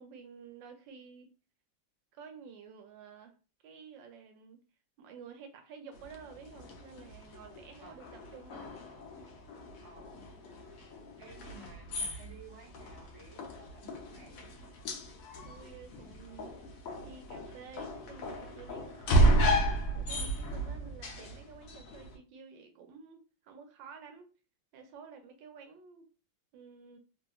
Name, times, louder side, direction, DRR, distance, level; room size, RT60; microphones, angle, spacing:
voice 1, 0.0-1.3 2.1-3.3 3.6-4.6 5.0-8.7 15.4-19.7 19.9-24.3 24.7-26.1 26.5-27.0, right 6 dB, 75° right, 6 dB, 1.2 m, -51 dB
sound 1, 5.9-22.2, right 1 dB, 75° left, 0.8 m, -33 dB
voice 2, 9.8-10.2 11.2-14.5, right 3 dB, 25° right, -3 dB, 0.5 m, -54 dB
3.1 x 2.7 x 2.3 m, 0.34 s
omnidirectional pair, 2.2 m